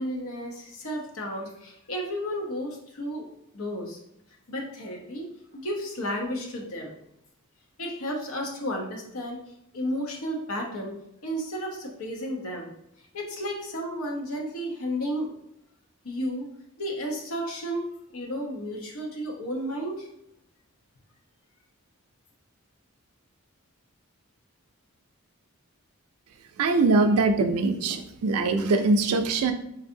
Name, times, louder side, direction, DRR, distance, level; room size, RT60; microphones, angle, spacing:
voice 1, 0.0-3.3 3.5-4.0 4.5-5.3 5.5-6.9 7.8-9.4 9.7-10.9 11.2-12.7 13.1-15.3 16.0-16.5 16.8-17.9 18.1-20.1, equal, 80° left, 0 dB, 0.8 m, -32 dB
voice 2, 26.6-29.5, right 3 dB, 85° right, 8 dB, 0.4 m, -22 dB
3.8 x 2.6 x 2.6 m, 0.79 s
head